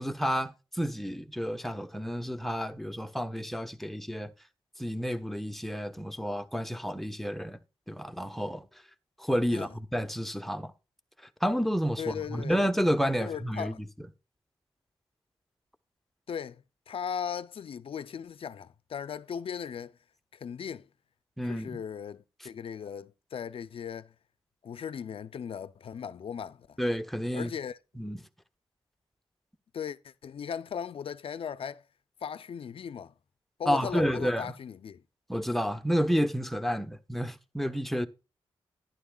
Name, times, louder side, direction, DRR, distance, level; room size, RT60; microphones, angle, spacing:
voice 1, 0.0-4.3 4.8-7.6 7.9-8.7 9.2-10.7 11.4-13.7 21.4-21.8 26.8-27.5 28.0-28.2 33.7-34.5 35.3-38.1, equal, ahead, 0.9 m, -30 dB
voice 2, 12.0-12.6 13.2-13.8 16.3-19.9 20.3-20.9 21.4-24.1 24.6-26.8 27.3-27.8 29.7-31.8 32.2-33.1 33.6-35.0, left 7 dB, 70° left, 0.5 m, -38 dB
11.5 x 10.5 x 2.3 m
cardioid pair, 55°, 10 cm